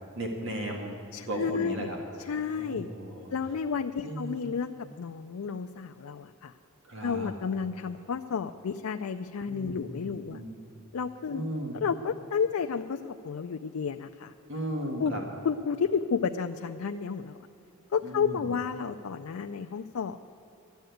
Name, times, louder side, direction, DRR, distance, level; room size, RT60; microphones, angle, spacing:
voice 1, 0.2-0.9 1.3-2.0 2.6-3.3 4.0-4.4 6.8-7.3 9.5-10.6 11.3-11.8 14.5-15.2 18.0-18.5, right 1 dB, 60° right, 1 dB, 1.8 m, -36 dB
voice 2, 1.1-1.9 2.2-2.9 3.3-6.5 7.0-10.4 10.9-11.4 11.7-14.3 15.0-15.1 15.4-17.4 17.9-20.2, left 6 dB, 80° left, 7 dB, 0.4 m, -31 dB
12.5 x 9.2 x 9.2 m, 2.7 s
head